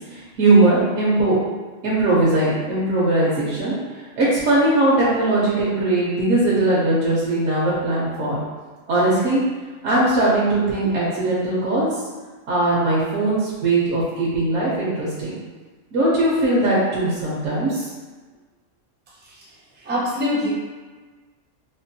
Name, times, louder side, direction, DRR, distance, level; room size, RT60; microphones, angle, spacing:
voice 1, 0.1-1.4 1.8-3.7 4.2-8.4 8.9-9.4 9.8-11.9 12.5-15.4 15.9-17.9, right 2 dB, 80° right, -7 dB, 1.1 m, -20 dB
voice 2, 19.8-20.5, left 1 dB, 15° right, -6 dB, 0.4 m, -24 dB
4.3 x 2.2 x 2.7 m, 1.4 s
omnidirectional pair, 1.3 m